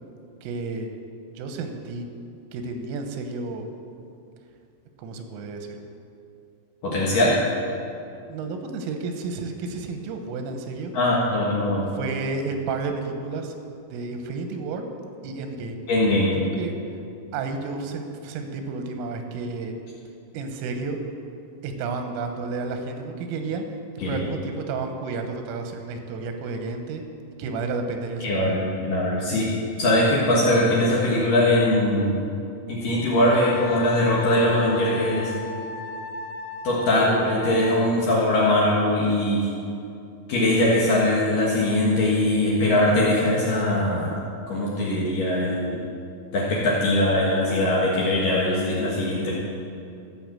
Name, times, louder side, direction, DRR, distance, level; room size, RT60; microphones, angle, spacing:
voice 1, 0.4-0.9 1.3-2.1 2.5-3.7 5.0-5.7 8.3-10.9 12.0-13.6 13.9-14.9 15.2-15.8 16.6-16.7 17.3-19.7 20.3-21.0 21.6-23.7 24.1-27.0 27.4-28.6, right 4 dB, 90° right, 5 dB, 3.6 m, -31 dB
voice 2, 6.8-7.4 10.9-11.9 15.9-16.3 24.0-24.2 28.2-29.5 29.8-32.3 32.7-35.3 36.6-39.5 40.3-44.1 44.5-45.8 46.3-49.3, left 1 dB, 65° left, -5 dB, 2.2 m, -21 dB
Wind instrument woodwind instrument, 33.1-38.0, left 5 dB, 85° left, 3.7 m, -36 dB
14.5 x 6.0 x 7.6 m, 2.6 s
omnidirectional pair, 5.7 m